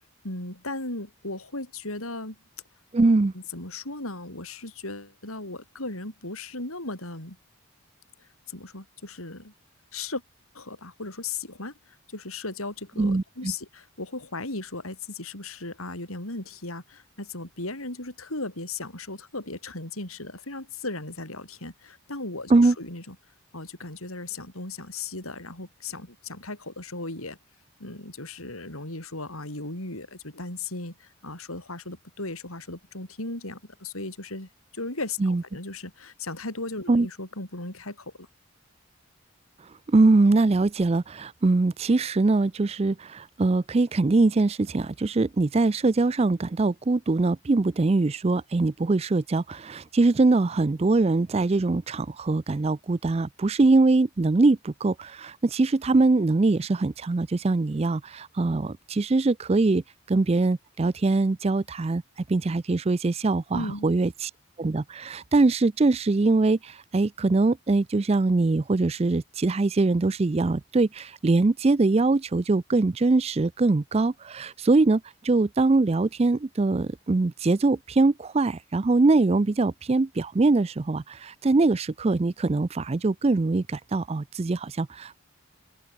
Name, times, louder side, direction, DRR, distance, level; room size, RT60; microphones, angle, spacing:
voice 1, 0.2-2.4 3.3-7.4 8.2-9.5 9.9-10.2 10.5-11.7 12.1-23.1 23.5-27.4 27.8-38.3 63.5-63.9, left 2 dB, 80° left, 6.9 m, -36 dB
voice 2, 2.9-3.3 13.0-13.5 22.5-22.7 35.2-35.4 36.9-37.1 39.9-59.8 60.1-62.0 62.3-64.3 64.6-85.2, right 3 dB, 30° right, 0.4 m, -22 dB
open air
head